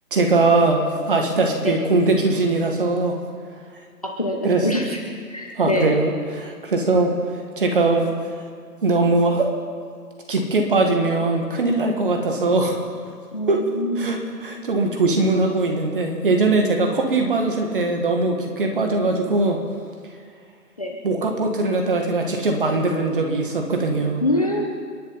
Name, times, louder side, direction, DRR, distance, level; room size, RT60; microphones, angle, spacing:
voice 1, 0.1-3.2 4.4-4.7 5.6-7.1 7.6-8.1 8.8-9.5 10.3-12.8 13.5-13.6 14.0-19.6 21.0-24.2, right 3 dB, 30° right, 2 dB, 1.9 m, -21 dB
voice 2, 4.0-5.0 5.3-5.9 13.3-14.1 20.8-21.0 24.2-24.8, left 1 dB, 20° left, 0 dB, 0.9 m, -24 dB
30.0 x 10.5 x 4.2 m, 2.1 s
figure-of-eight pair, 155°, 50 cm